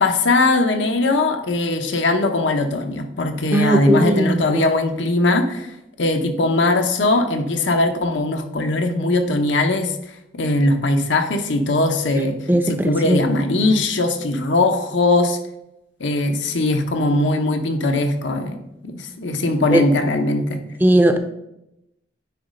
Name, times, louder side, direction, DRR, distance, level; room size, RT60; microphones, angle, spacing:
voice 1, 0.0-5.7 6.0-10.0 10.3-12.4 12.7-15.4 16.0-18.6 18.8-20.6, left 2 dB, 90° left, 5 dB, 0.9 m, -20 dB
voice 2, 3.5-4.6 12.5-13.2 19.7-19.8 20.8-21.2, right 1 dB, 10° right, 7 dB, 0.4 m, -17 dB
9.4 x 3.2 x 5.1 m, 0.85 s
head